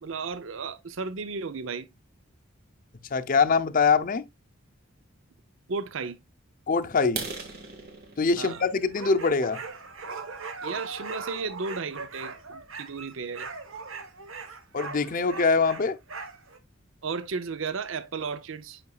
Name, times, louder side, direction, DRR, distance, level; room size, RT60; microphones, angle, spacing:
voice 1, 0.0-1.9 5.7-6.2 8.4-8.6 10.6-13.5 17.0-18.8, right 4 dB, 70° right, 0.6 m, -34 dB
voice 2, 3.1-4.2 6.7-7.2 8.2-9.6 14.7-16.0, left 4 dB, 40° left, 0.6 m, -23 dB
sound 1, 7.0-10.8 11.3-11.5 12.0-12.1 12.5-12.7 13.0-13.1 13.5-13.6 13.9-14.4, right 3 dB, 50° right, 1.9 m, -41 dB
sound 2, 8.5-16.6, right 4 dB, 90° right, 1.1 m, -39 dB
8.5 x 5.2 x 2.3 m
head